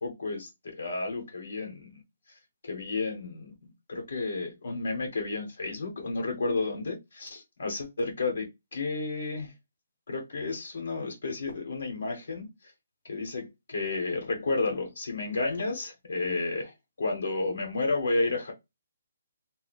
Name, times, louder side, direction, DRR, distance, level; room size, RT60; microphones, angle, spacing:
voice 1, 0.0-2.0 2.6-3.5 3.9-8.5 8.7-9.5 10.1-12.5 13.0-18.5, left 3 dB, 70° left, 1.1 m, -31 dB
2.7 x 2.1 x 4.0 m
hypercardioid pair, 170°, 0 cm